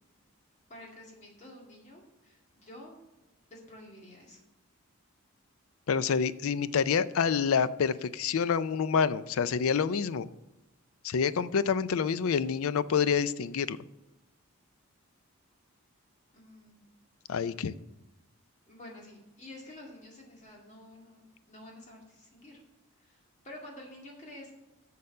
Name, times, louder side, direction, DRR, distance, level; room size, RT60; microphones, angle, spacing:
voice 1, 0.7-3.0 3.5-4.4 16.3-16.8 18.7-22.6 23.0-24.5, left 1 dB, 30° left, -2 dB, 2.1 m, -50 dB
voice 2, 5.9-10.3 11.0-13.8 17.3-17.7, left 6 dB, 70° left, 16 dB, 0.4 m, -27 dB
6.9 x 6.6 x 6.4 m, 0.98 s
head